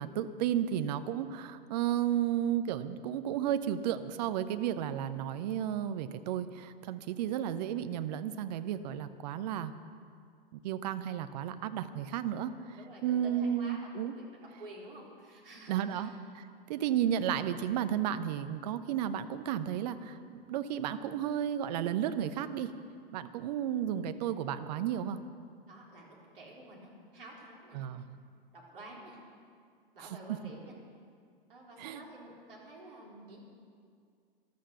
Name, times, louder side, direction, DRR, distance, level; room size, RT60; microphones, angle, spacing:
voice 1, 0.0-9.7 10.5-12.5 13.0-14.1 15.7-16.1 16.3-22.7 23.1-25.2 27.7-28.0 31.8-32.0, right 10 dB, 45° right, 11 dB, 0.9 m, -33 dB
voice 2, 12.8-14.2 14.6-16.1 16.7-16.9 25.7-27.8 28.5-29.2 29.9-30.7 31.5-33.4, right 1 dB, 65° right, -2 dB, 3.9 m, -50 dB
13.0 x 12.5 x 6.9 m, 2.2 s
figure-of-eight pair, 95°, 29 cm